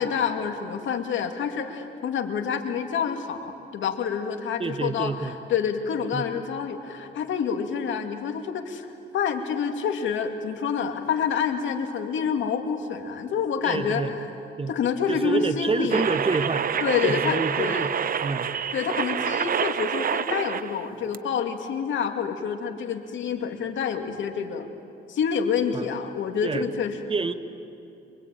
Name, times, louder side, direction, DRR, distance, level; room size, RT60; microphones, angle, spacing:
voice 1, 0.0-8.9 9.1-14.2 14.7-16.1 16.8-17.9 18.7-24.7 25.1-27.0, left 7 dB, 75° left, 6 dB, 2.4 m, -28 dB
voice 2, 4.6-5.3 6.1-6.3 13.6-14.1 14.6-14.7 15.1-16.7 17.0-17.9 18.2-18.5 25.7-25.9 26.4-26.6 27.1-27.3, right 4 dB, 30° right, 10 dB, 1.2 m, -27 dB
sound 1, 15.9-20.8 21.1-21.2, right 7 dB, 45° right, 0.8 m, -27 dB
26.5 x 22.5 x 9.1 m, 2.6 s
cardioid pair, 90°, 20 cm